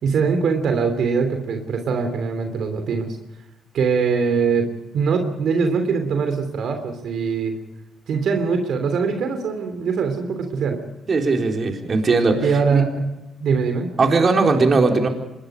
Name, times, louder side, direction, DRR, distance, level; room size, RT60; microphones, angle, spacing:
voice 1, 0.0-3.1 3.7-7.5 8.1-10.8 12.4-13.1 13.4-13.9, right 5 dB, 65° right, 6 dB, 3.2 m, -22 dB
voice 2, 11.1-12.8 14.0-15.1, right 3 dB, 40° right, 3 dB, 4.1 m, -19 dB
25.5 x 21.0 x 5.0 m, 1.0 s
cardioid pair, 90°, 0 cm